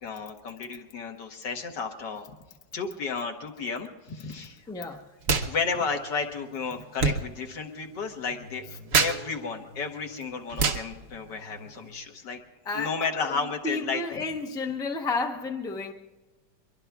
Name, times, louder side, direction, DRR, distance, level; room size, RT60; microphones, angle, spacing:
voice 1, 0.0-2.3 2.7-4.6 5.4-8.7 9.0-12.4 12.7-14.0, left 5 dB, 80° left, 3 dB, 2.0 m, -32 dB
voice 2, 4.7-5.0 12.6-15.9, left 3 dB, 5° left, 3 dB, 0.5 m, -32 dB
sound 1, 5.2-5.5 5.8-11.9, right 4 dB, 55° right, 1.3 m, -30 dB
23.5 x 23.0 x 2.4 m, 1.2 s
omnidirectional pair, 1.9 m